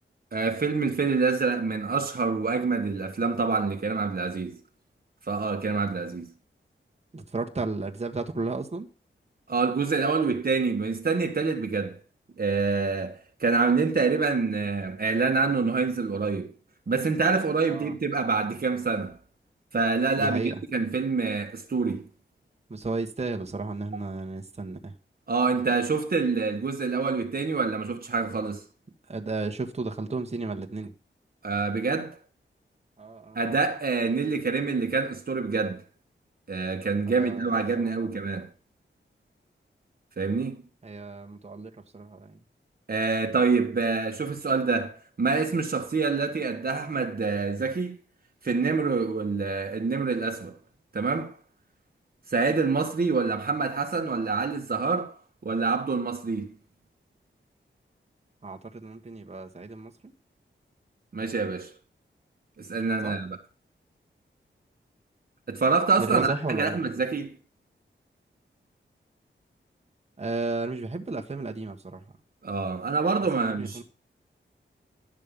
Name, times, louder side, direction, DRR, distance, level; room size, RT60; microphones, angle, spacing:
voice 1, 0.3-4.6 5.3-6.3 9.5-11.9 12.4-16.5 16.9-19.2 19.7-22.1 25.3-28.6 31.4-32.2 33.3-35.8 36.5-38.5 40.2-40.6 42.9-48.0 48.4-50.5 50.9-51.4 52.3-55.1 55.4-56.5 61.1-61.7 62.6-63.4 65.5-67.4 72.4-73.8, right 4 dB, 50° right, 1.4 m, -26 dB
voice 2, 7.1-8.9 17.7-17.9 20.2-20.6 22.7-24.9 29.1-30.9 33.0-33.4 37.2-37.5 38.0-38.1 40.8-42.4 58.4-59.9 63.0-63.1 66.0-66.8 70.2-72.0 73.4-73.8, right 3 dB, 35° right, 1.4 m, -33 dB
11.5 x 6.6 x 5.3 m
wide cardioid pair, 85°, 20 cm